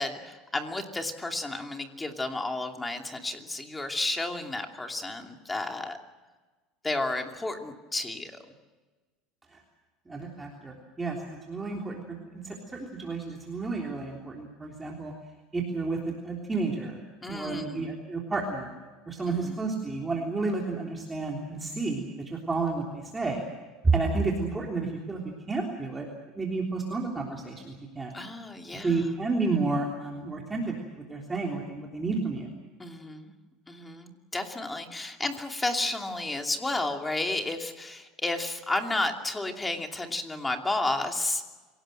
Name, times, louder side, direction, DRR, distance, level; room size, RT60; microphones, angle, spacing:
voice 1, 0.0-6.0 6.8-8.3 17.2-17.9 19.3-19.6 28.1-29.1 32.8-33.3 33.7-41.4, left 2 dB, 10° left, 4 dB, 2.7 m, -32 dB
voice 2, 10.1-12.2 12.4-15.1 15.5-17.0 17.3-18.7 19.1-23.5 23.8-25.2 25.5-26.1 26.3-28.2 28.8-30.7 31.1-32.5, right 3 dB, 15° right, 0 dB, 3.4 m, -31 dB
26.5 x 18.0 x 7.8 m, 1.3 s
supercardioid pair, 125°, 0 cm